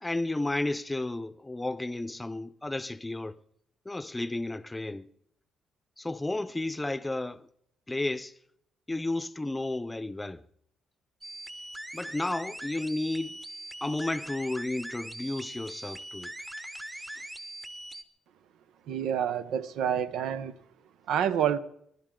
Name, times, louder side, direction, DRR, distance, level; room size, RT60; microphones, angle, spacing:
voice 1, 0.0-3.4 3.9-5.1 6.0-7.5 7.9-8.3 8.9-10.4 11.9-13.3 13.8-16.3 17.0-17.2, left 2 dB, 15° left, 0.7 m, -32 dB
sound 1, 11.2-18.0, right 1 dB, 15° right, 1.0 m, -41 dB
voice 2, 18.9-20.5 21.1-21.6, right 9 dB, 85° right, 0.8 m, -28 dB
29.0 x 11.5 x 3.8 m
cardioid pair, 90°, 0 cm